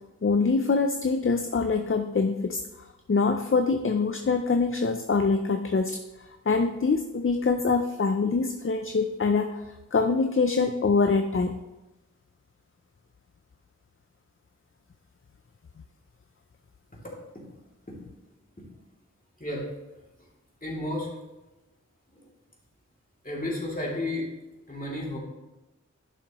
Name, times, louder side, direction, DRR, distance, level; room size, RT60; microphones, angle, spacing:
voice 1, 0.2-2.6 3.1-11.6, left 4 dB, 45° left, 6 dB, 0.5 m, -24 dB
voice 2, 20.6-21.1 23.2-24.2 24.7-25.2, left 1 dB, 25° left, -4 dB, 2.7 m, -32 dB
11.0 x 6.8 x 3.0 m, 1.1 s
wide cardioid pair, 40°, 31 cm